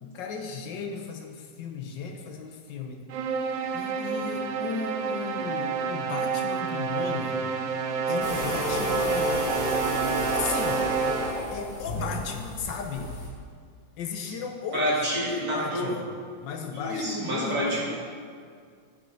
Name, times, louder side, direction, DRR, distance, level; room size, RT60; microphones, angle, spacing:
voice 1, 0.0-3.0 3.7-7.4 8.1-9.5 10.3-10.9 11.5-13.2 14.0-16.0 16.4-17.8, left 5 dB, 85° left, 3 dB, 1.6 m, -35 dB
sound 1, 3.1-11.6, right 5 dB, 80° right, 1.3 m, -29 dB
sound 2, 8.2-13.3, left 1 dB, 70° left, 2.8 m, -31 dB
voice 2, 14.7-15.9 16.7-17.8, equal, 55° right, -6 dB, 2.9 m, -28 dB
15.0 x 5.7 x 4.0 m, 2.1 s
omnidirectional pair, 2.0 m